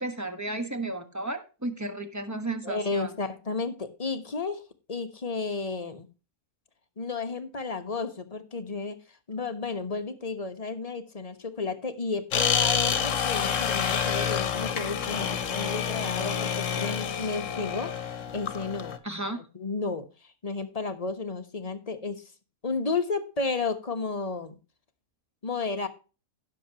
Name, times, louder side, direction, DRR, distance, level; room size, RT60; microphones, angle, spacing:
voice 1, 0.0-3.1 19.0-19.4, right 2 dB, 15° right, 8 dB, 1.2 m, -33 dB
voice 2, 2.6-4.6 4.9-6.1 7.0-9.0 9.3-17.9 18.3-19.0 19.4-20.1 20.4-22.2 22.6-24.6 25.4-25.9, left 4 dB, 30° left, 8 dB, 1.1 m, -32 dB
sound 1, 12.3-19.0, left 7 dB, 65° left, 1.3 m, -28 dB
16.0 x 6.8 x 2.9 m, 0.32 s
omnidirectional pair, 1.5 m